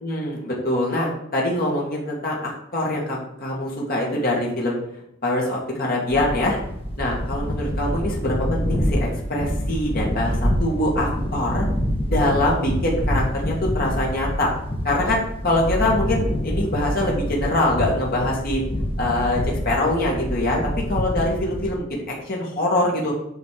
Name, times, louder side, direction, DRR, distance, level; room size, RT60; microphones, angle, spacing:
voice 1, 0.0-4.8 5.2-6.6 7.0-11.7 12.1-14.5 14.8-18.6 19.0-20.6 20.9-23.1, left 1 dB, 50° left, -3 dB, 2.1 m, -24 dB
sound 1, 6.1-21.7, equal, 30° left, 1.3 m, -26 dB
8.2 x 4.3 x 6.5 m, 0.80 s
head